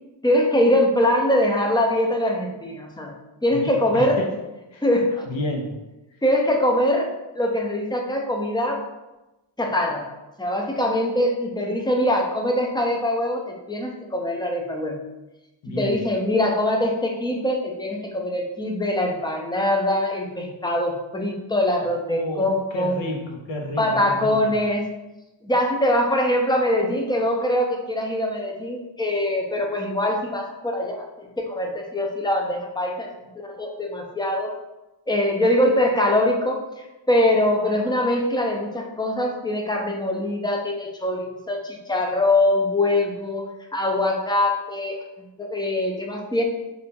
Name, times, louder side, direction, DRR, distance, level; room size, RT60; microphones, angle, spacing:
voice 1, 0.2-3.1 3.4-4.2 4.8-5.3 6.2-7.1 7.3-8.8 9.6-10.1 10.4-15.0 15.7-23.0 23.8-24.9 25.4-33.1 33.4-34.5 35.1-43.4 43.7-45.0 45.4-46.4, left 1 dB, 10° left, 1 dB, 0.5 m, -23 dB
voice 2, 3.5-4.3 4.7-4.8 5.3-5.7 15.6-16.0 22.1-24.3, left 1 dB, 65° left, 1 dB, 0.8 m, -30 dB
2.8 x 2.6 x 3.5 m, 1.0 s
cardioid pair, 75°, 49 cm